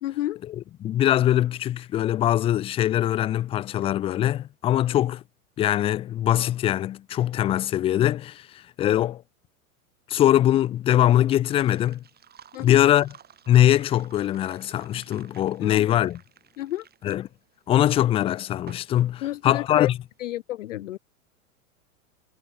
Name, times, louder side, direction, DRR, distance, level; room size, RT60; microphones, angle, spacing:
voice 1, 0.0-0.4 12.5-12.9 15.6-16.0 16.6-16.9 19.2-19.9 20.2-21.0, left 14 dB, 60° left, 0.6 m, -30 dB
voice 2, 0.8-5.2 5.6-9.2 10.1-12.0 12.6-13.1 13.5-16.1 17.0-17.2 17.7-19.9, left 12 dB, 15° left, 0.5 m, -22 dB
sound 1, 10.4-20.2, right 8 dB, 20° right, 4.8 m, -53 dB
figure-of-eight pair, 95°, 44 cm